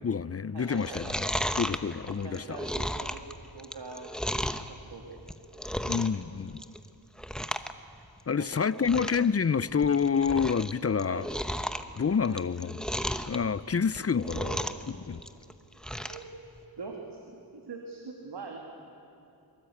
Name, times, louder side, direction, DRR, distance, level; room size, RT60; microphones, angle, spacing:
voice 1, 0.0-1.1 1.6-2.4 5.9-6.6 8.3-11.3 12.0-12.8 13.3-14.5 15.1-15.2, left 6 dB, 35° left, 18 dB, 0.5 m, -28 dB
voice 2, 0.5-1.4 2.1-3.2 3.5-4.1 4.7-5.2 8.2-8.9 11.0-11.3 12.2-12.4 14.1-14.6 16.0-16.3 16.8-18.6, right 4 dB, 70° right, 1 dB, 2.4 m, -43 dB
Chewing mastication, 0.7-4.7 5.2-6.2 6.5-6.9 7.2-7.7 8.0-8.1 8.5-8.6 8.8-9.3 9.7-10.7 11.0-13.4 13.8-14.9 15.2-16.2 16.6-16.7, equal, ahead, 1.0 m, -33 dB
24.0 x 23.0 x 8.5 m, 2.6 s
wide cardioid pair, 60°, 42 cm